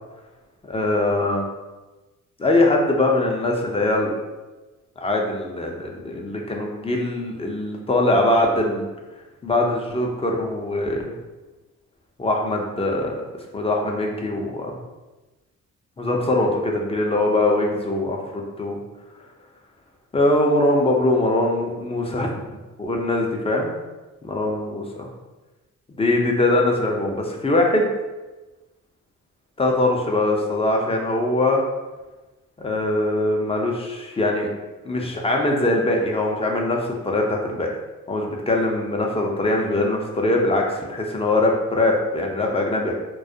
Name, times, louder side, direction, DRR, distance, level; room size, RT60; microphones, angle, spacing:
voice 1, 0.7-1.4 2.4-4.1 5.0-8.9 9.4-11.0 12.2-13.2 13.5-14.7 16.0-18.8 20.1-22.3 22.8-23.7 24.2-25.1 26.0-27.9 29.6-31.6 32.6-34.5 34.8-37.7 38.1-42.9, left 2 dB, 15° left, 0 dB, 0.4 m, -22 dB
2.3 x 2.0 x 2.6 m, 1.1 s
supercardioid pair, 65°, 34 cm